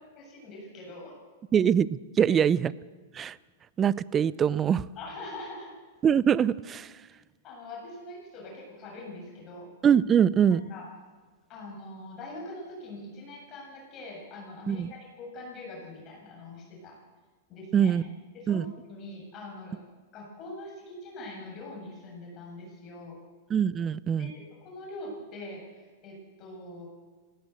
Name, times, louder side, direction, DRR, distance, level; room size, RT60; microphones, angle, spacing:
voice 1, 0.2-1.2 5.0-5.7 7.4-9.7 10.7-10.9 11.5-17.0 17.5-17.9 18.3-19.8 20.1-23.2 24.2-26.9, left 2 dB, 35° left, -1 dB, 7.4 m, -43 dB
voice 2, 1.5-2.7 3.1-3.4 3.8-4.9 6.0-6.9 9.8-10.6 14.7-14.9 17.7-18.0 18.5-18.7 23.5-24.3, right 8 dB, 25° right, 20 dB, 0.6 m, -23 dB
19.5 x 17.0 x 8.0 m, 1.4 s
hypercardioid pair, 110°, 0 cm